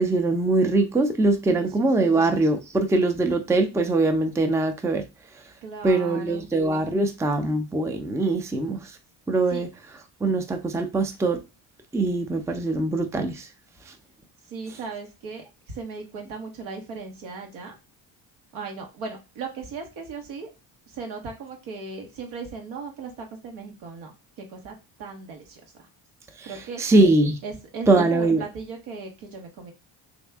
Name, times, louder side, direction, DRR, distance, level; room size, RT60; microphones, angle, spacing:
voice 1, 0.0-5.0 5.8-8.9 9.3-9.7 10.2-11.4 11.9-13.5 26.4-26.5 26.8-27.4 27.9-28.4, right 2 dB, 5° right, 0.5 m, -22 dB
voice 2, 1.5-1.9 5.6-6.5 9.5-9.6 14.5-17.7 18.5-20.5 20.9-25.9 26.4-26.8 27.4-29.7, right 4 dB, 75° right, 1.2 m, -37 dB
3.2 x 2.7 x 3.4 m
hypercardioid pair, 60°, 49 cm